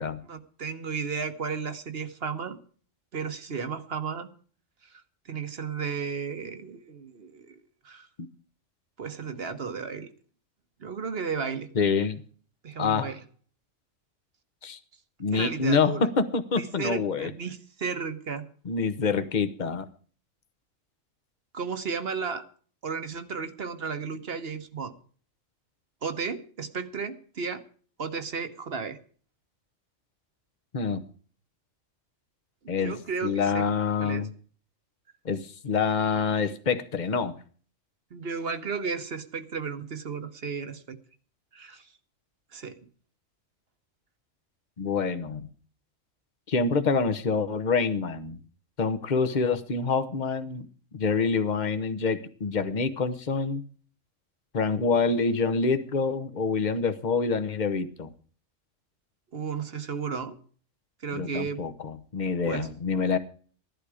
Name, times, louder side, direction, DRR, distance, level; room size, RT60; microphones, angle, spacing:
voice 1, 0.2-2.6 3.1-4.3 4.8-8.1 9.0-10.1 10.8-11.7 12.6-13.2 15.3-16.1 16.5-18.5 21.5-22.5 22.8-24.9 26.0-27.6 28.0-29.0 32.6-33.7 34.0-34.3 38.1-41.0 41.5-41.9 42.5-42.8 59.3-60.4 61.0-61.6 62.4-62.7, right 5 dB, 50° right, 10 dB, 1.3 m, -34 dB
voice 2, 11.7-12.2 12.8-13.1 14.6-14.8 15.2-17.3 18.6-19.9 30.7-31.0 32.7-33.0 33.2-34.3 35.2-37.3 44.8-45.5 46.5-48.4 48.8-50.7 50.9-53.6 54.5-58.1 61.1-63.2, left 5 dB, 40° left, 10 dB, 1.1 m, -26 dB
15.5 x 11.5 x 5.0 m, 0.44 s
omnidirectional pair, 1.3 m